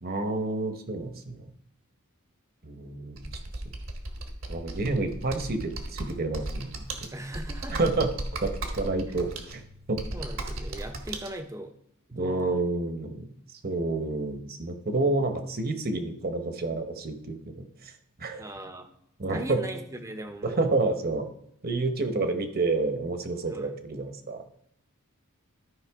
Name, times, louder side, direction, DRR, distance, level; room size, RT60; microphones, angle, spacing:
voice 1, 0.0-1.5 2.6-3.3 4.5-6.9 7.7-8.1 8.4-9.6 9.9-10.0 12.1-13.3 13.6-17.7 18.2-18.5 19.2-19.6 20.4-21.3 21.6-24.4, right 3 dB, 45° right, 7 dB, 1.0 m, -29 dB
Computer keyboard, 3.2-11.3, right 2 dB, 70° right, 1.3 m, -36 dB
voice 2, 7.1-7.8 9.1-9.2 10.1-11.7 12.1-12.6 18.4-18.9 19.3-20.7 23.5-23.8, right 1 dB, 15° right, 7 dB, 0.6 m, -39 dB
13.0 x 5.3 x 3.5 m, 0.72 s
head